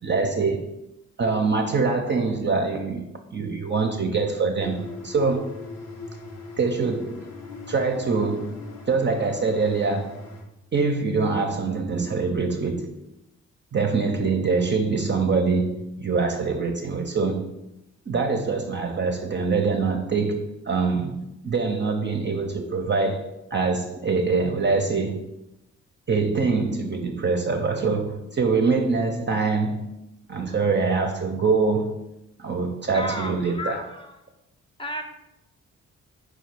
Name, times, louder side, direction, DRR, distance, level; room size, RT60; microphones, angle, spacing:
voice 1, 0.0-0.6 1.2-3.1 3.3-5.5 6.6-7.3 7.7-8.6 8.9-10.2 10.7-13.0 13.7-17.5 18.1-25.3 26.1-29.9 30.3-32.0 32.4-33.8, right 4 dB, 30° right, 0.5 m, -24 dB
sound 1, 4.6-10.4, left 2 dB, 85° left, 0.9 m, -40 dB
voice 2, 32.9-34.2 34.8-35.0, left 1 dB, 15° left, 0.7 m, -33 dB
4.4 x 2.2 x 4.3 m
hypercardioid pair, 45°, 35 cm